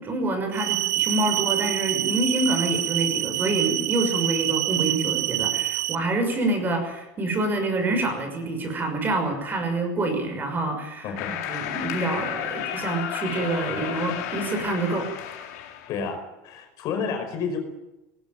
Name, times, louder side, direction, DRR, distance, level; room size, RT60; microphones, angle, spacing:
voice 1, 0.0-11.1 11.5-15.5, right 2 dB, 25° right, 6 dB, 5.9 m, -27 dB
sound 1, 0.5-5.9, right 15 dB, 90° right, 0.7 m, -26 dB
sound 2, 11.2-16.0, left 10 dB, 80° left, 4.0 m, -32 dB
voice 2, 15.9-17.6, left 5 dB, 45° left, 6 dB, 5.1 m, -30 dB
19.0 x 18.5 x 9.1 m, 1.0 s
supercardioid pair, 150°, 8 cm